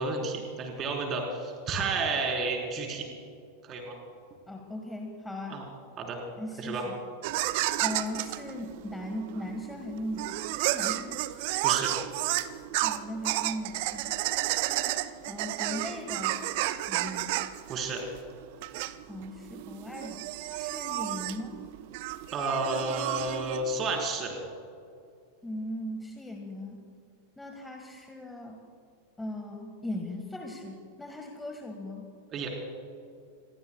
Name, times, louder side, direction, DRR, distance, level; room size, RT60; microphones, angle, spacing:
voice 1, 0.0-3.1 3.6-4.0 5.5-5.6 6.0-6.2 6.6-6.9 11.6-11.9 17.7-18.0 22.3-24.4 32.3-32.5, right 3 dB, 30° right, 1 dB, 4.2 m, -31 dB
voice 2, 4.5-5.6 6.4-7.0 7.8-11.2 12.8-15.0 15.3-16.4 16.9-17.4 19.1-20.2 20.5-21.6 25.4-26.8 27.4-28.6 29.2-32.1, left 1 dB, 5° left, 2 dB, 1.7 m, -38 dB
sound 1, 7.2-24.0, right 16 dB, 50° right, 0.6 m, -32 dB
27.0 x 22.0 x 2.4 m, 2.3 s
figure-of-eight pair, 90°, 0 cm